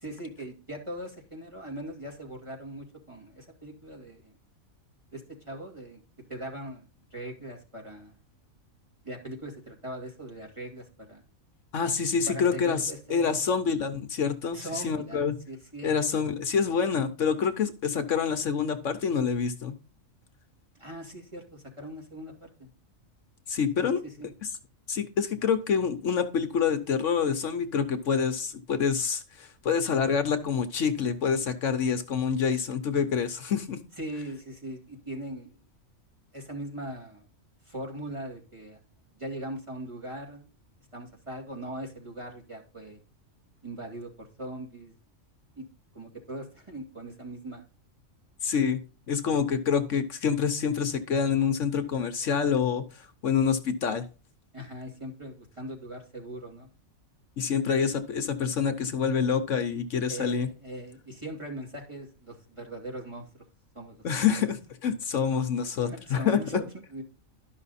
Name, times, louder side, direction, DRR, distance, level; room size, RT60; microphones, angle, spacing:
voice 1, 0.0-4.4 5.1-6.0 6.3-8.1 9.0-11.2 12.3-13.5 14.5-16.0 20.7-22.7 23.7-24.3 34.0-35.6 36.3-37.2 37.6-38.8 39.1-40.5 40.9-43.0 43.6-44.9 45.5-45.6 45.9-47.7 54.5-56.7 57.4-57.7 60.1-63.3 63.7-64.5 65.8-67.0, right 1 dB, 20° right, 0 dB, 2.5 m, -40 dB
voice 2, 11.7-15.3 15.8-19.7 23.5-24.0 24.9-33.8 48.4-48.8 49.1-54.0 57.4-60.5 64.0-64.6 64.8-66.6, left 6 dB, 65° left, 9 dB, 1.2 m, -27 dB
12.0 x 5.8 x 4.1 m, 0.34 s
omnidirectional pair, 1.4 m